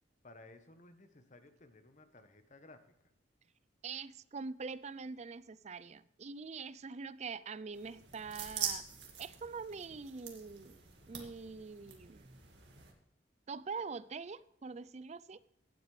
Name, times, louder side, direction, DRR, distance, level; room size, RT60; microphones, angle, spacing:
voice 1, 0.2-2.8, left 2 dB, 40° left, 1.1 m, -57 dB
voice 2, 3.8-8.9 9.2-10.8 11.1-12.3 13.5-15.4, right 5 dB, 35° right, 0.4 m, -44 dB
sound 1, 7.7-12.9, right 8 dB, 65° right, 2.2 m, -44 dB
17.0 x 8.1 x 3.3 m
head